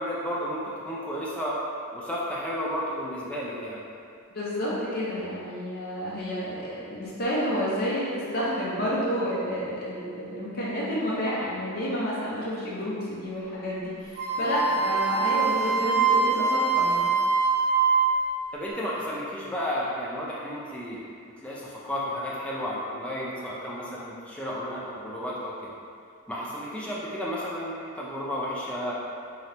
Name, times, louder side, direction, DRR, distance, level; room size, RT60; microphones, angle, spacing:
voice 1, 0.0-1.6 1.9-3.8 18.5-21.1 21.4-25.5 26.3-28.9, equal, 5° left, -6 dB, 0.4 m, -32 dB
voice 2, 4.3-17.1, equal, 45° left, -8 dB, 0.7 m, -30 dB
Wind instrument woodwind instrument, 14.2-18.3, right 4 dB, 20° right, 1.2 m, -23 dB
3.9 x 2.8 x 3.3 m, 2.4 s
head